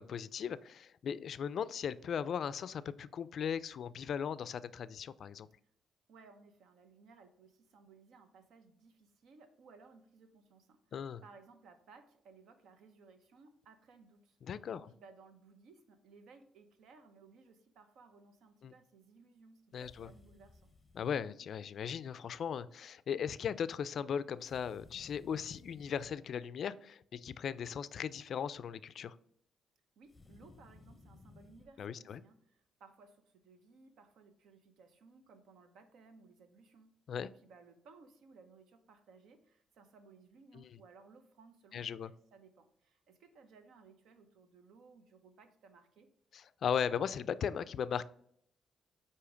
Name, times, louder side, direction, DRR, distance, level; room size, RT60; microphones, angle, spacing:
voice 1, 0.0-5.5 10.9-11.2 14.5-14.9 18.6-18.7 19.7-20.1 20.9-29.2 31.8-32.2 37.1-37.3 40.5-40.6 41.7-42.1 46.3-48.0, left 7 dB, 60° left, 0.3 m, -38 dB
voice 2, 6.1-14.4 14.7-20.7 30.0-46.1, right 4 dB, 75° right, 0.8 m, -60 dB
sound 1, 19.7-21.3 24.4-26.2 30.0-31.7, left 3 dB, 20° left, 0.6 m, -59 dB
8.2 x 2.8 x 4.9 m
cardioid pair, 90°, 0 cm